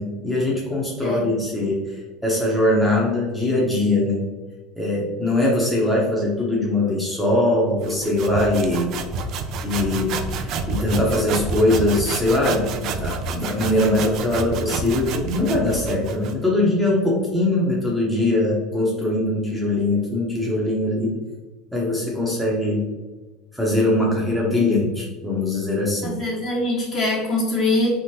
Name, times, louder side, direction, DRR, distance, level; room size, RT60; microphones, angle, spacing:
voice 1, 0.0-4.3 4.8-8.9 9.6-21.1 21.7-22.8 23.5-26.2, left 1 dB, ahead, -4 dB, 0.8 m, -22 dB
sound 1, 7.8-16.4, right 4 dB, 55° right, 0.3 m, -29 dB
voice 2, 26.0-28.0, left 2 dB, 45° left, -5 dB, 1.3 m, -23 dB
3.6 x 2.0 x 2.7 m, 1.2 s
hypercardioid pair, 90°, 0 cm